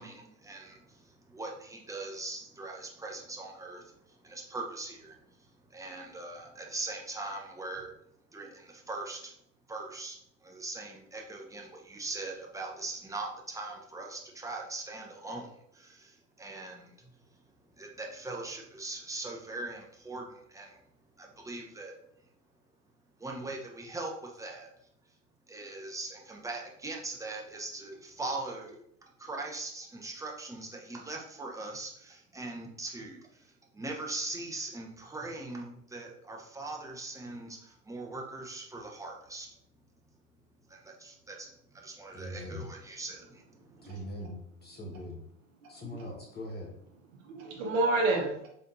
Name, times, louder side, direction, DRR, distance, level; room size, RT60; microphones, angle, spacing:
voice 1, 0.0-8.0 8.3-9.3 9.7-17.4 17.7-20.8 21.2-21.9 22.2-22.3 23.2-24.7 25.1-25.2 25.5-28.8 29.2-39.5 40.7-44.0, right 2 dB, 10° right, 0 dB, 0.8 m, -41 dB
voice 2, 42.1-42.6 43.8-45.2 45.7-46.8, left 1 dB, 25° left, -1 dB, 1.0 m, -41 dB
voice 3, 45.6-46.1 47.2-48.5, right 2 dB, 70° right, 0 dB, 0.9 m, -30 dB
4.2 x 3.5 x 2.6 m, 0.72 s
hypercardioid pair, 85°, 41 cm